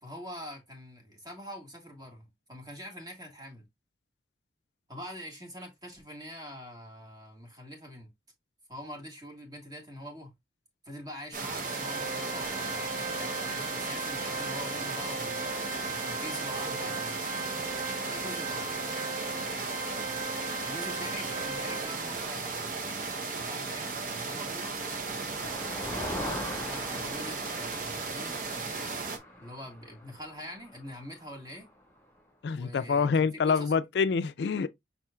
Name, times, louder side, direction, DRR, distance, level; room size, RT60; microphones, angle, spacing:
voice 1, 0.0-3.6 4.9-8.1 8.7-10.3 10.8-17.4 18.0-18.7 20.6-24.7 26.6-28.4 28.7-31.7 32.5-33.7, equal, 20° right, 1.6 m, -44 dB
sound 1, 11.3-29.2, right 4 dB, 45° right, 0.8 m, -35 dB
Organ, 11.6-22.3, right 2 dB, 65° right, 1.9 m, -38 dB
Motor vehicle (road), 24.1-31.8, left 1 dB, 15° left, 1.5 m, -42 dB
voice 2, 32.4-34.7, left 5 dB, 70° left, 0.4 m, -26 dB
5.4 x 4.3 x 2.3 m
head